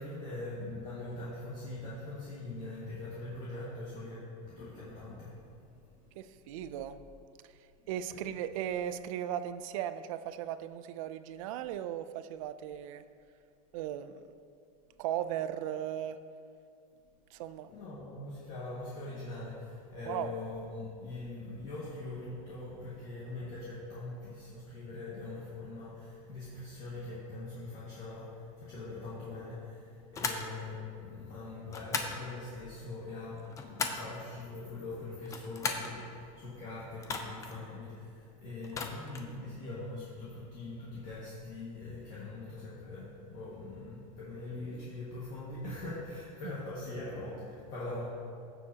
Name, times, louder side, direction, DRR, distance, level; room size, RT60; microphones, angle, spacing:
voice 1, 0.0-6.6 7.8-8.3 17.7-48.1, left 2 dB, 40° left, -8 dB, 1.9 m, -42 dB
voice 2, 6.2-7.0 7.9-13.0 13.7-14.2 15.0-16.2 17.3-17.7 20.1-20.3 46.4-46.5, right 11 dB, 65° right, 12 dB, 0.5 m, -37 dB
sound 1, 30.1-30.5 31.7-32.2 33.3-34.1 35.2-35.9 37.0-37.5 38.6-39.3, left 4 dB, 15° left, 0.6 m, -36 dB
16.0 x 7.1 x 2.9 m, 2.4 s
supercardioid pair, 160°, 19 cm